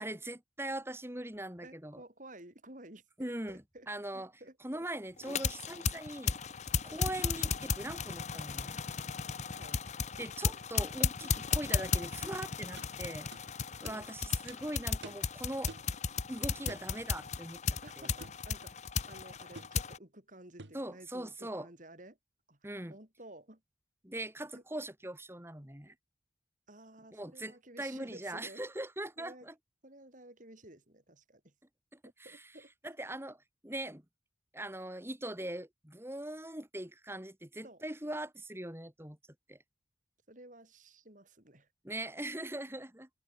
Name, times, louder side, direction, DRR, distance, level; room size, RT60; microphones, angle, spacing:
voice 1, 0.0-2.0 3.2-4.3 4.6-6.4 6.8-8.8 10.2-13.3 13.8-15.7 16.3-18.1 20.7-21.7 22.6-22.9 24.0-25.9 27.1-29.5 31.9-32.4 32.8-34.0 34.5-39.2 39.5-39.6 41.8-43.1, right 1 dB, 15° right, 2.8 m, -41 dB
voice 2, 1.6-3.9 4.1-4.9 6.9-7.1 9.5-9.9 10.4-10.6 13.8-14.1 17.8-22.2 22.5-22.6 22.9-23.6 24.5-24.6 26.7-28.6 29.2-29.5 29.8-31.5 32.0-32.7 37.6-37.8 40.3-41.7, right 1 dB, 45° right, 5.3 m, -53 dB
sound 1, 5.2-20.0, left 5 dB, 40° left, 0.7 m, -35 dB
sound 2, 12.3-12.4 12.8-12.9 13.3-13.4 13.8-14.0 14.5-14.6 15.0-15.3 15.7-15.9 16.7-16.9 18.2-18.4 19.5-19.8 20.6-20.8, right 3 dB, 80° right, 1.9 m, -48 dB
open air
head